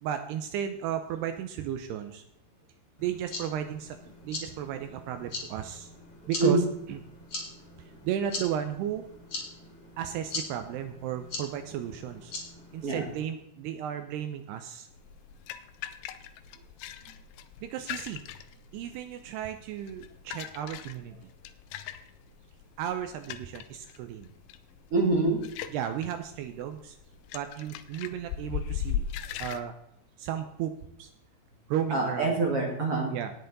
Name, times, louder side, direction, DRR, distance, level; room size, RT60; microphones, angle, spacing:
voice 1, 0.0-2.2 3.0-4.0 4.2-5.9 6.3-6.6 6.9-7.0 7.8-9.1 10.0-12.3 12.7-14.9 17.6-18.2 18.7-21.2 22.8-24.3 25.7-27.0 27.3-29.1 29.4-29.7 30.2-30.7 31.0-31.1 31.7-32.3 33.1-33.3, right 10 dB, 80° right, 8 dB, 2.5 m, -34 dB
sound 1, 3.0-13.2, left 3 dB, 35° left, 2.7 m, -41 dB
sound 2, 14.9-29.6, left 9 dB, 85° left, 2.1 m, -39 dB
voice 2, 24.9-25.4 31.9-33.1, right 3 dB, 50° right, -1 dB, 1.8 m, -25 dB
18.5 x 6.6 x 4.0 m, 0.79 s
omnidirectional pair, 5.2 m